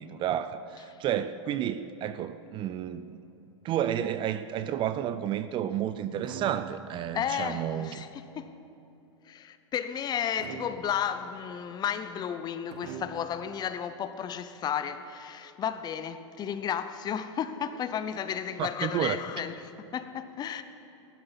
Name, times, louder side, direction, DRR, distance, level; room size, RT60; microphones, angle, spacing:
voice 1, 0.0-3.1 3.6-8.1 18.6-19.2, right 10 dB, 30° right, 0.5 m, -31 dB
sound 1, 5.5-5.6 6.2-7.1 10.4-11.2 12.7-13.5, right 8 dB, 60° right, 1.0 m, -44 dB
voice 2, 7.1-8.6 9.2-20.6, left 8 dB, 25° left, 0.7 m, -33 dB
15.0 x 11.5 x 5.8 m
hypercardioid pair, 110°, 16 cm